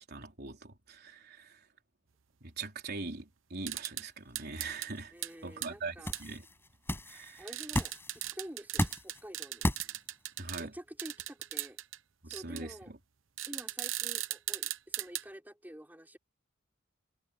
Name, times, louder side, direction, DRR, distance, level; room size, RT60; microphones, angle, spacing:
voice 1, 0.1-1.6 2.4-5.1 5.4-6.5 7.1-7.5 10.4-10.7 12.2-13.0, right 3 dB, 55° right, 3.9 m, -42 dB
sound 1, 3.7-4.0 4.4-4.9 5.2-5.3 5.6-5.7 6.1-6.2 7.5-10.6 11.0-12.0 12.3-12.6 13.4-15.2, right 14 dB, 80° right, 1.0 m, -38 dB
sound 2, 4.3-10.5, left 1 dB, 10° left, 6.9 m, -36 dB
voice 2, 5.1-6.1 7.4-7.9 8.2-9.7 10.6-11.8 12.3-12.9 13.5-16.2, equal, 10° right, 4.6 m, -48 dB
head